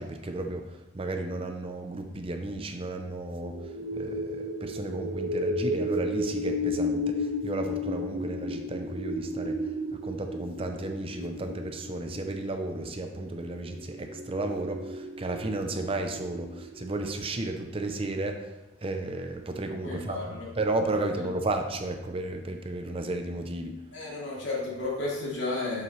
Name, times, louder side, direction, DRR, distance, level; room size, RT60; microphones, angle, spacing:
voice 1, 0.0-23.8, right 2 dB, 30° right, 5 dB, 0.5 m, -33 dB
sound 1, 3.3-17.7, left 1 dB, 90° right, 1.5 m, -34 dB
voice 2, 19.8-20.5 21.2-21.3 23.9-25.8, left 2 dB, 65° left, -5 dB, 2.8 m, -33 dB
8.3 x 7.3 x 3.1 m, 1.0 s
head